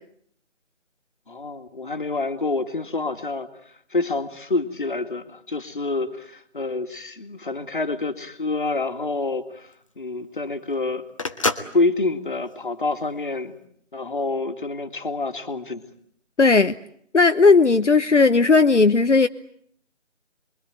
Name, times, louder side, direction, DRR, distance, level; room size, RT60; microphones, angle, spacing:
voice 1, 1.3-11.1 11.7-13.6 13.9-15.8, left 3 dB, 40° left, 10 dB, 2.3 m, -27 dB
Telephone, 8.3-13.5, left 2 dB, 25° left, 1.4 m, -31 dB
voice 2, 16.4-16.7 17.1-19.3, left 4 dB, 70° left, 9 dB, 1.1 m, -16 dB
27.5 x 23.0 x 9.1 m, 0.67 s
figure-of-eight pair, 165°, 37 cm